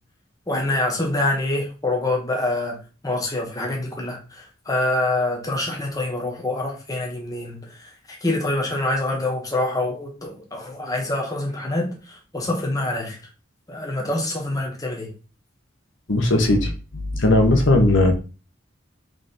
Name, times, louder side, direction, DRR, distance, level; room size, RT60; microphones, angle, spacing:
voice 1, 0.5-2.8 3.0-13.2 13.7-15.1, left 2 dB, 20° left, 1.6 m, -26 dB
voice 2, 16.1-18.1, left 2 dB, 75° left, 1.5 m, -18 dB
6.1 x 3.8 x 4.5 m
head